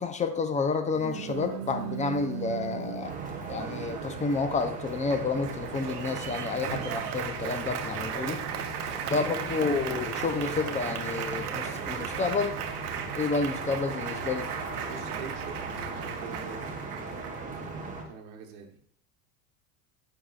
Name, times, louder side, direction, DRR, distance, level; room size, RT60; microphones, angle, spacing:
voice 1, 0.0-3.1 3.5-8.4 9.1-12.6 13.1-14.5, left 4 dB, 15° left, 9 dB, 0.5 m, -30 dB
Applause, 0.9-17.9, right 9 dB, 85° right, 0.8 m, -37 dB
sound 1, 3.0-18.0, right 3 dB, 15° right, 1.2 m, -38 dB
voice 2, 14.8-15.6 16.2-16.9 17.8-18.8, right 7 dB, 65° right, 2 dB, 1.2 m, -44 dB
8.3 x 5.3 x 2.4 m, 0.64 s
hypercardioid pair, 105°, 45 cm